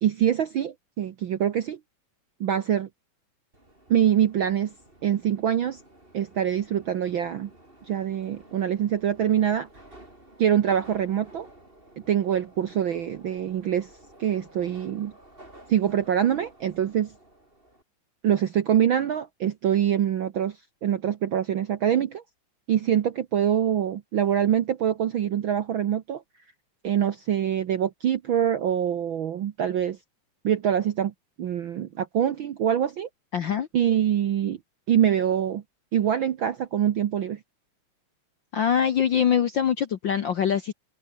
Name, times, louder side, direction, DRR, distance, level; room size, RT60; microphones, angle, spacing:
voice 1, 0.0-1.8 2.4-2.9 3.9-4.7 5.0-5.8 6.1-7.5 7.9-9.7 10.4-11.5 12.1-13.9 14.2-15.1 15.7-17.1 18.2-22.2 22.7-26.2 26.8-30.0 30.4-31.1 31.4-33.1 33.7-34.6 34.9-35.6 35.9-37.4, right 10 dB, 65° right, 1.3 m, -24 dB
Subway metro underground, 3.5-17.8, right 1 dB, 15° right, 7.0 m, -52 dB
voice 2, 33.3-33.7 38.5-40.7, left 8 dB, 60° left, 1.2 m, -23 dB
omnidirectional pair, 3.4 m